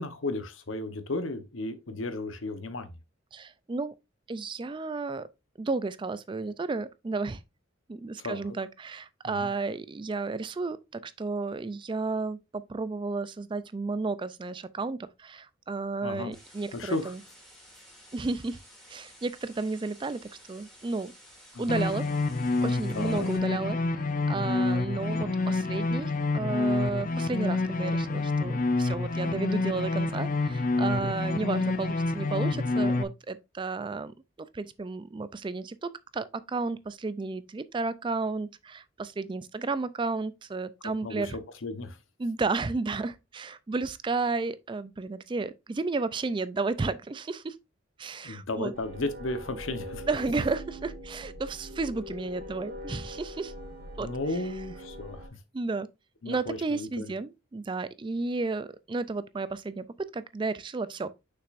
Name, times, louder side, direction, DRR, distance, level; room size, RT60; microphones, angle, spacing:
voice 1, 0.0-2.9 8.2-8.5 9.2-9.5 16.0-16.3 16.7-17.1 21.5-21.7 22.9-23.3 31.0-31.1 41.0-42.0 48.2-50.1 54.0-55.2 56.2-57.1, left 2 dB, 90° left, 1.0 m, -34 dB
voice 2, 3.3-3.9 4.3-5.3 5.6-7.4 7.9-17.2 18.1-18.6 18.9-20.2 20.5-21.1 21.6-22.1 22.6-23.8 24.3-34.1 34.5-41.4 42.2-47.5 48.0-48.7 50.1-53.5 54.0-54.1 55.5-55.9 56.3-61.1, right 3 dB, 25° right, 0.3 m, -32 dB
sound 1, 16.3-23.4, equal, ahead, 2.5 m, -53 dB
sound 2, 21.7-33.0, left 3 dB, 45° left, 0.6 m, -28 dB
sound 3, 48.7-55.3, left 1 dB, 45° right, 1.9 m, -42 dB
6.6 x 5.8 x 2.5 m
head